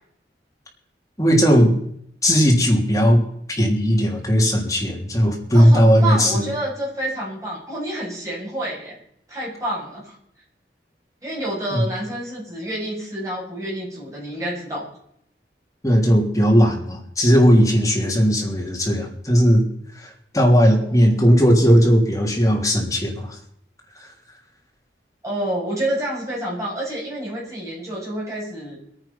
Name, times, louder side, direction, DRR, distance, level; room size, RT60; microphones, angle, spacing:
voice 1, 1.2-1.7 2.2-3.2 3.5-6.5 11.7-11.8 15.8-19.6 20.0-23.4, equal, 20° left, 0 dB, 3.3 m, -17 dB
voice 2, 5.5-9.0 9.3-10.2 11.2-14.9 20.7-21.1 25.2-28.8, right 1 dB, 20° right, -5 dB, 7.5 m, -28 dB
21.0 x 9.5 x 5.9 m, 0.69 s
head